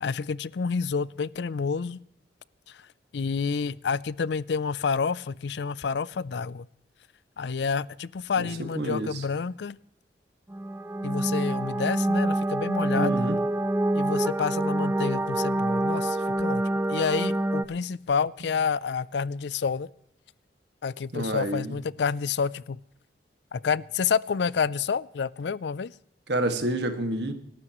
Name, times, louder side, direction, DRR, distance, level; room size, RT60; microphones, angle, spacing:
voice 1, 0.0-2.0 2.7-2.8 3.1-6.7 7.4-9.8 11.0-13.2 13.9-19.9 20.8-22.8 23.5-25.9, left 5 dB, 75° left, 0.4 m, -29 dB
voice 2, 8.8-9.2 13.0-13.4 21.1-21.7 26.3-27.3, right 1 dB, 70° right, 1.8 m, -28 dB
sound 1, 10.5-17.6, right 1 dB, 15° right, 0.4 m, -26 dB
25.5 x 12.5 x 3.0 m
head